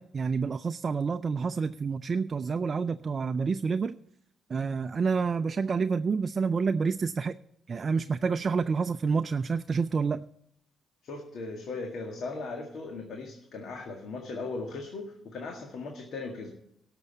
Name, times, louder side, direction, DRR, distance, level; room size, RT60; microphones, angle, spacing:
voice 1, 0.0-4.0 4.5-7.4 7.7-10.2, right 5 dB, 40° right, 11 dB, 0.4 m, -28 dB
voice 2, 11.0-16.6, left 3 dB, 65° left, 2 dB, 2.0 m, -38 dB
12.5 x 6.7 x 8.2 m, 0.74 s
cardioid pair, 90°, 0 cm